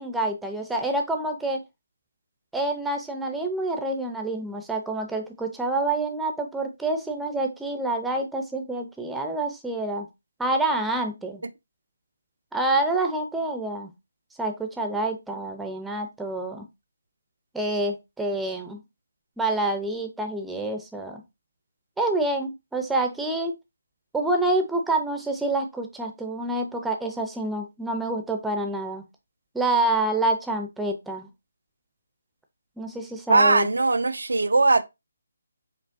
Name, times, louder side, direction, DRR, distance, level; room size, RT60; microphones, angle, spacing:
voice 1, 0.0-1.6 2.5-10.1 10.4-11.4 12.5-13.9 14.4-16.7 17.5-18.8 19.4-21.2 22.0-23.5 24.1-29.0 29.5-31.3 32.8-33.7, right 2 dB, 5° right, 0.6 m, -27 dB
voice 2, 33.3-34.8, right 3 dB, 80° right, 0.5 m, -20 dB
5.0 x 3.1 x 2.6 m
figure-of-eight pair, 155°, 0 cm